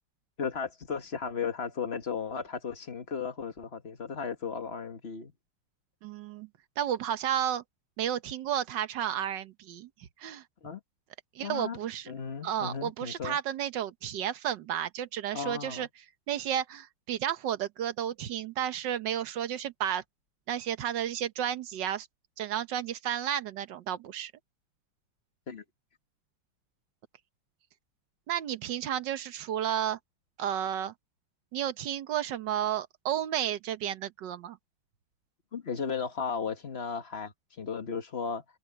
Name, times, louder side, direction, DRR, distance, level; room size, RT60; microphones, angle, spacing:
voice 1, 0.4-5.3 10.6-10.8 11.4-11.8 12.1-13.4 15.3-15.9 25.5-25.6 35.5-38.4, left 6 dB, 35° left, 1.5 m, -35 dB
voice 2, 6.0-6.5 6.8-7.6 8.0-9.9 10.2-10.4 11.3-12.1 12.4-15.9 16.3-20.0 20.5-22.1 22.4-24.3 28.3-30.0 30.4-30.9 31.5-34.6, right 10 dB, 65° right, 1.5 m, -32 dB
omnidirectional pair, 2.3 m